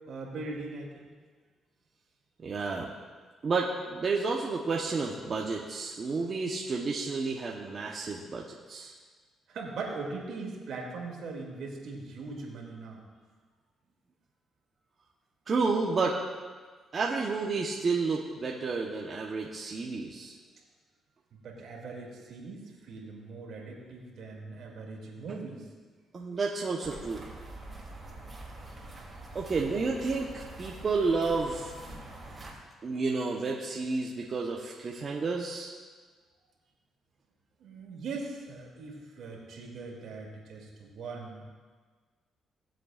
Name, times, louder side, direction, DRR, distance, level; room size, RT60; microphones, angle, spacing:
voice 1, 0.1-1.1 9.5-13.0 21.4-25.6 37.6-41.5, right 3 dB, 70° right, -1 dB, 2.5 m, -40 dB
voice 2, 2.4-2.9 3.4-8.9 15.5-16.2 16.9-20.4 26.1-27.3 29.3-32.1 32.8-35.8, right 4 dB, 40° right, -2 dB, 1.0 m, -31 dB
sound 1, 26.8-32.5, right 2 dB, 25° right, 3.0 m, -45 dB
19.0 x 7.7 x 2.5 m, 1.5 s
cardioid pair, 90°, 0 cm